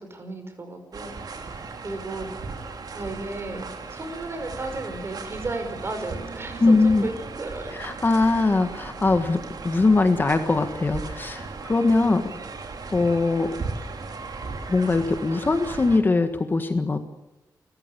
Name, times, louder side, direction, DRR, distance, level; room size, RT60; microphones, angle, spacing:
voice 1, 0.0-1.4 1.8-2.3 2.9-3.7 3.9-6.6 7.0-7.9, right 2 dB, 35° right, 7 dB, 5.4 m, -34 dB
sound 1, 0.9-16.0, right 4 dB, 65° right, 3.3 m, -37 dB
voice 2, 6.6-7.1 7.7-12.3 12.9-13.5 14.7-17.0, left 3 dB, 30° left, 8 dB, 1.6 m, -21 dB
29.5 x 14.5 x 7.0 m, 1.1 s
wide cardioid pair, 165°, 7 cm